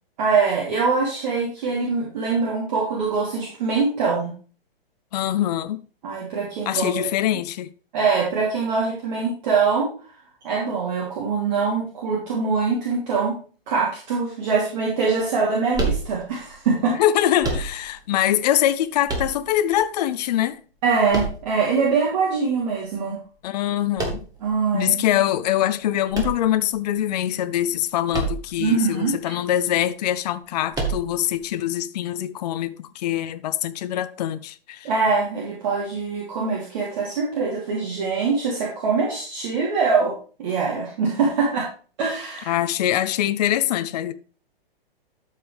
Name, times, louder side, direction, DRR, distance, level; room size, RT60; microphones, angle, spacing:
voice 1, 0.2-4.3 6.0-7.0 7.9-9.9 10.4-13.3 13.7-16.9 20.8-23.2 24.4-24.9 28.6-29.3 34.8-40.1 40.4-41.7 42.0-42.6, right 4 dB, 50° right, 3.1 m, -23 dB
voice 2, 5.1-5.8 6.7-7.7 16.9-20.6 23.4-24.3 24.7-34.9 42.5-44.1, left 12 dB, 45° left, 0.6 m, -23 dB
sound 1, 15.7-16.5 17.4-18.1 19.1-19.8 21.1-21.9 24.0-24.5 26.1-27.0 28.1-28.7 28.9-29.0 30.7-31.4, right 3 dB, 10° right, 1.7 m, -28 dB
12.5 x 5.4 x 3.4 m
figure-of-eight pair, 120°, 30 cm